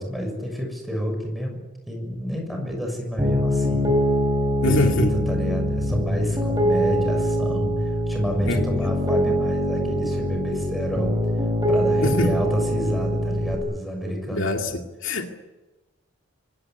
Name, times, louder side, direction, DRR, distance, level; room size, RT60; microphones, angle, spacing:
voice 1, 0.0-4.0 4.6-11.2 11.7-14.5, equal, ahead, 6.8 m, -29 dB
Piano, 3.2-13.5, equal, 15° right, 4.3 m, -23 dB
voice 2, 4.6-5.1 8.5-8.6 12.0-12.4 14.3-14.7 15.0-15.3, left 2 dB, 70° left, 2.3 m, -23 dB
25.5 x 18.0 x 9.8 m
head